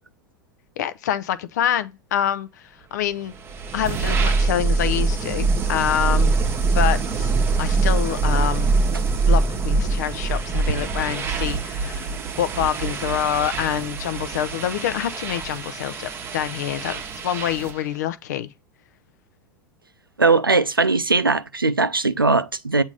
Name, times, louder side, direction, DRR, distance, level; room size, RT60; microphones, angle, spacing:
voice 1, 0.8-2.5 2.9-3.3 3.7-6.3 6.7-7.3 7.6-8.7 9.3-12.1 12.4-18.5, left 10 dB, 55° left, 0.6 m, -26 dB
sound 1, 3.2-17.9, right 3 dB, 20° right, 1.0 m, -23 dB
voice 2, 20.2-22.8, right 3 dB, 85° right, 0.5 m, -19 dB
8.1 x 2.7 x 5.0 m
figure-of-eight pair, 90°, 11 cm